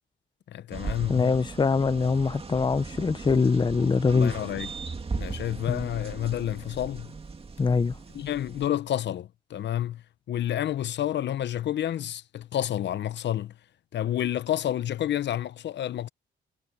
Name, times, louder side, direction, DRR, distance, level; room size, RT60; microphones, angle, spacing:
voice 1, 0.5-1.3 4.1-4.7 5.1-7.1 8.1-13.5 13.9-16.1, left 11 dB, 65° left, 0.8 m, -29 dB
sound 1, 0.7-8.7, right 4 dB, 30° right, 2.3 m, -38 dB
voice 2, 1.1-4.3 5.7-5.9 7.6-8.0, left 4 dB, 25° left, 0.8 m, -23 dB
cardioid pair, 90°, 20 cm